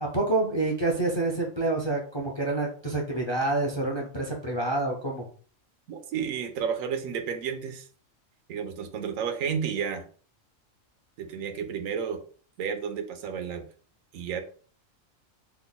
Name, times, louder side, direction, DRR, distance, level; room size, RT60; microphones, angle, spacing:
voice 1, 0.0-5.2, right 2 dB, 35° left, 0 dB, 0.4 m, -27 dB
voice 2, 5.9-7.9 8.5-10.0 11.2-12.2 12.6-13.7 14.1-14.4, right 7 dB, 90° right, 7 dB, 1.0 m, -31 dB
3.3 x 2.0 x 3.8 m, 0.42 s
omnidirectional pair, 1.4 m